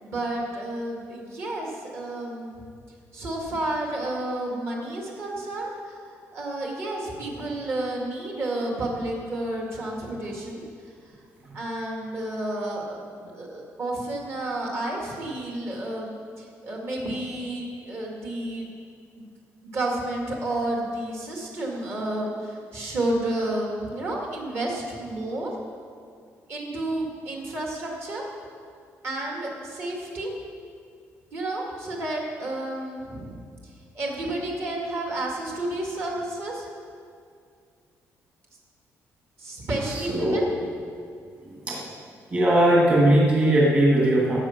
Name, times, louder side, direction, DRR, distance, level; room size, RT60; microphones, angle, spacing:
voice 1, 0.0-2.6 3.1-6.0 6.3-10.6 11.5-18.7 19.1-19.2 19.7-25.5 26.5-28.2 29.0-30.3 31.3-33.4 33.9-36.7 39.4-40.5, right 1 dB, 45° right, -1 dB, 2.2 m, -31 dB
voice 2, 39.9-40.5 41.5-41.9 42.3-44.4, right 1 dB, 30° right, -4 dB, 2.1 m, -20 dB
16.5 x 7.6 x 5.9 m, 2.2 s
cardioid pair, 180°, 5 cm